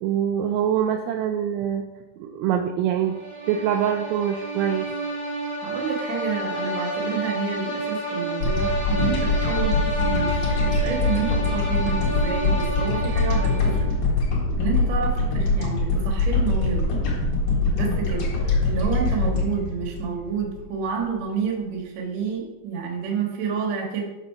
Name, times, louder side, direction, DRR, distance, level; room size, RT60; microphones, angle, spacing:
voice 1, 0.0-1.8 2.2-3.2 3.5-4.9, right 9 dB, 80° right, 4 dB, 2.5 m, -24 dB
sound 1, 3.0-14.0, right 1 dB, 25° right, 0.8 m, -30 dB
voice 2, 5.6-13.9 14.6-16.9 17.7-24.0, right 6 dB, 55° right, 0 dB, 2.0 m, -29 dB
sound 2, 8.4-20.9, left 3 dB, 55° left, 2.9 m, -23 dB
8.8 x 4.1 x 5.7 m, 1.0 s
omnidirectional pair, 5.2 m